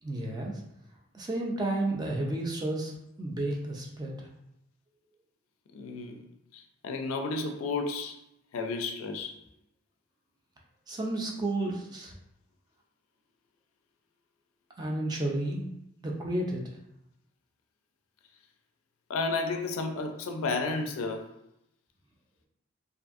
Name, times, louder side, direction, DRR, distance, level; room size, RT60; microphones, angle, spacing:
voice 1, 0.0-0.6 1.1-2.9 3.2-4.3 10.9-12.2 14.8-15.7 16.0-16.6, right 1 dB, 20° right, -1 dB, 0.4 m, -31 dB
voice 2, 5.7-6.3 6.5-8.2 8.5-9.4 19.1-21.3, left 3 dB, 90° left, 5 dB, 0.4 m, -32 dB
2.6 x 2.5 x 2.4 m, 0.82 s
head